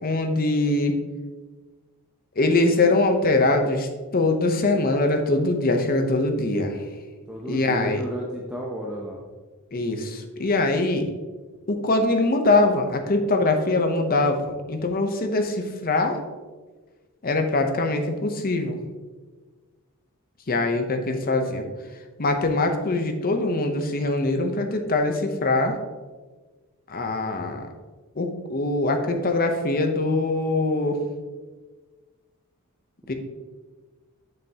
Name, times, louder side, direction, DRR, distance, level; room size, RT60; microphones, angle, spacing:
voice 1, 0.0-0.9 2.4-6.8 7.5-8.0 9.7-11.1 11.7-16.2 17.2-18.8 20.5-21.7 22.2-25.8 26.9-27.7 28.2-31.0 33.1-33.2, left 2 dB, 40° left, 5 dB, 0.7 m, -23 dB
voice 2, 7.3-9.2, equal, 5° right, -4 dB, 0.6 m, -32 dB
6.8 x 6.4 x 2.8 m, 1.3 s
head